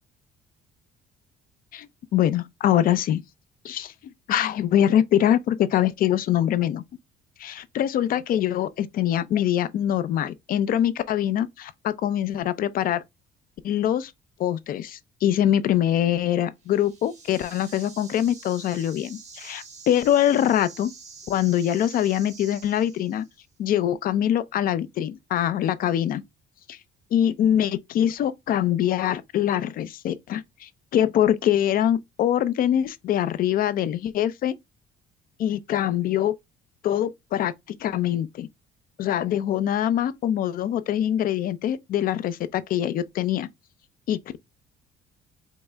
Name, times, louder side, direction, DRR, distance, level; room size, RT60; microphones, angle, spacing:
voice 1, 2.1-3.2 3.6-3.9 4.3-6.8 7.4-13.0 13.6-14.1 14.4-20.9 21.3-23.2 23.6-26.2 26.7-26.8 27.1-34.5 35.4-36.3 36.8-37.5 37.8-38.5 39.0-43.5 44.1-44.4, left 11 dB, 60° left, 0.5 m, -23 dB
sound 1, 16.6-23.3, right 5 dB, 40° right, 1.4 m, -46 dB
5.4 x 2.0 x 3.4 m
cardioid pair, 110°, 17 cm